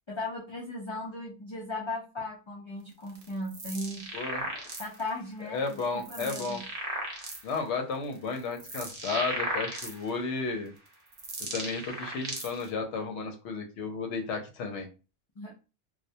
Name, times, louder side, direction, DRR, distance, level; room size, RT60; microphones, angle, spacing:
voice 1, 0.1-4.1 4.8-6.6 15.4-15.5, left 2 dB, 50° left, -4 dB, 0.3 m, -37 dB
sound 1, 3.1-5.1 5.7-7.6 8.1-10.3 10.9-12.7, right 1 dB, 45° right, 0.6 m, -36 dB
voice 2, 4.1-4.5 5.4-6.6 7.4-10.7 11.5-14.9, left 4 dB, 80° left, 4 dB, 0.9 m, -33 dB
2.3 x 2.1 x 2.6 m, 0.32 s
omnidirectional pair, 1.2 m